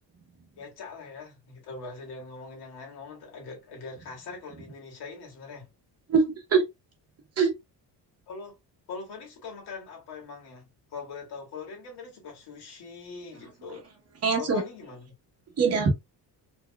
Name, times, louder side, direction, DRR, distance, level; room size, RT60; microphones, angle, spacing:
voice 1, 0.6-5.7 8.3-8.6 8.9-13.9 14.4-15.1, left 4 dB, 70° left, 2.0 m, -42 dB
voice 2, 6.1-6.6 7.4-7.6 14.2-14.6 15.6-15.9, right 5 dB, 35° right, 1.0 m, -22 dB
4.6 x 2.9 x 2.2 m
cardioid pair, 170°, 40 cm